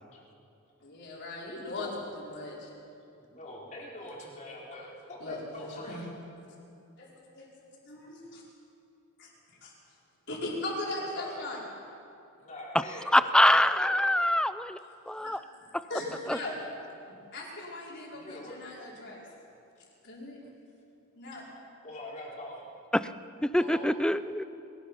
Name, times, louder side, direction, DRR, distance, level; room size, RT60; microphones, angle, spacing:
voice 1, 0.8-1.9 2.2-2.7 4.8-4.9 5.2-6.0 7.0-7.5 7.8-8.4 9.2-9.3 9.6-9.7 10.3-11.6 15.2-15.4 15.9-16.6 17.3-18.2 18.7-19.2 20.0-20.4 21.1-21.4, left 2 dB, 50° left, -4 dB, 4.9 m, -38 dB
voice 2, 3.2-6.1 10.8-11.5 12.4-13.4 13.7-14.0 18.3-18.6 21.8-22.6 23.6-24.0, left 1 dB, 35° left, -4 dB, 4.4 m, -44 dB
voice 3, 13.1-14.8 15.1-15.4 16.3-16.4 23.5-24.4, left 1 dB, 5° left, 13 dB, 0.4 m, -24 dB
22.5 x 20.5 x 5.8 m, 2.6 s
head